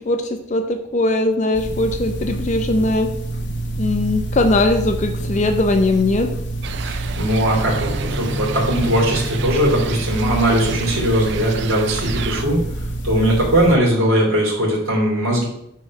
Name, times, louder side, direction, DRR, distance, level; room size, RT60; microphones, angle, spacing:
voice 1, 0.1-3.1 3.8-6.3, left 2 dB, 35° left, 6 dB, 0.5 m, -19 dB
sound 1, 1.5-13.8, right 2 dB, 55° left, 1.0 m, -27 dB
sound 2, 6.6-12.4, right 6 dB, 60° right, 0.4 m, -30 dB
voice 2, 6.8-12.6 13.0-15.5, right 1 dB, 90° right, -3 dB, 2.6 m, -19 dB
sound 3, 7.4-11.4, left 1 dB, 30° right, 1.2 m, -32 dB
8.4 x 3.3 x 6.3 m, 0.78 s
head